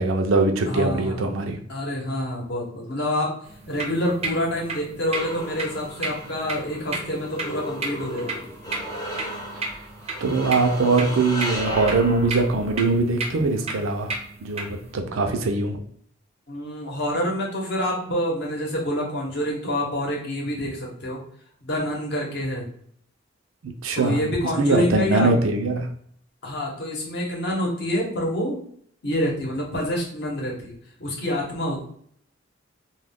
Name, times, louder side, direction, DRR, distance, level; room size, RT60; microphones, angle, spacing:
voice 1, 0.0-1.6 9.5-9.8 10.2-14.1 14.4-15.8 23.6-24.2 24.6-25.9, right 3 dB, 85° right, 5 dB, 0.5 m, -22 dB
voice 2, 0.7-1.2 1.7-8.5 16.5-21.2 21.6-22.7 23.9-25.3 26.4-28.7 29.0-31.8, equal, 55° left, -1 dB, 0.8 m, -27 dB
sound 1, 3.4-14.9, right 3 dB, 30° right, 0.5 m, -34 dB
sound 2, 4.2-12.8, equal, 20° left, 0.5 m, -36 dB
2.3 x 2.1 x 3.4 m, 0.63 s
head